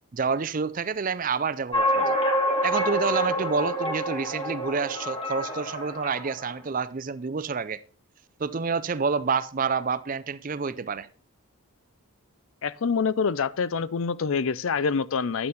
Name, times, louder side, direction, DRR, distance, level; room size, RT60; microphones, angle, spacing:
voice 1, 0.1-2.2 2.6-7.8 8.4-11.1, right 5 dB, 35° right, 0.4 m, -28 dB
sound 1, 1.7-6.5, equal, 25° left, 1.8 m, -27 dB
voice 2, 12.6-15.5, left 5 dB, 65° left, 0.5 m, -26 dB
11.0 x 8.6 x 4.1 m
head